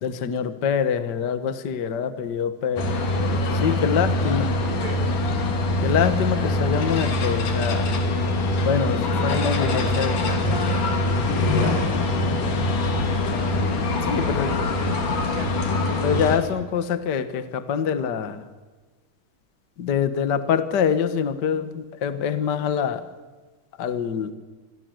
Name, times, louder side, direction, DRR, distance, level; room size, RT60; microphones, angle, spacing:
voice 1, 0.0-3.0 3.6-4.5 5.8-7.9 8.6-10.1 14.0-14.5 16.0-18.4 19.8-23.1 23.8-24.3, left 7 dB, 45° left, 11 dB, 1.4 m, -25 dB
sound 1, 2.8-16.4, left 2 dB, 75° left, 4.4 m, -23 dB
voice 2, 3.1-3.8 4.5-5.1 9.1-11.1 11.5-13.6 14.0-15.7, right 2 dB, 25° right, 4 dB, 5.9 m, -38 dB
27.5 x 22.0 x 7.9 m, 1.3 s
omnidirectional pair, 3.7 m